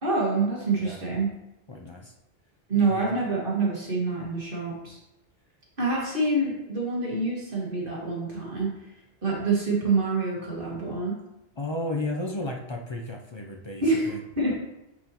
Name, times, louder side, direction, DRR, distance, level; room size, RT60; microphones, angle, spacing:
voice 1, 0.0-1.3 2.7-5.0 5.8-8.7 9.2-11.1 13.8-14.6, right 3 dB, 50° right, -4 dB, 1.8 m, -26 dB
voice 2, 1.7-2.1 2.7-3.1 11.6-14.2, left 2 dB, 40° left, 1 dB, 0.4 m, -34 dB
8.9 x 4.1 x 2.9 m, 0.92 s
omnidirectional pair, 1.2 m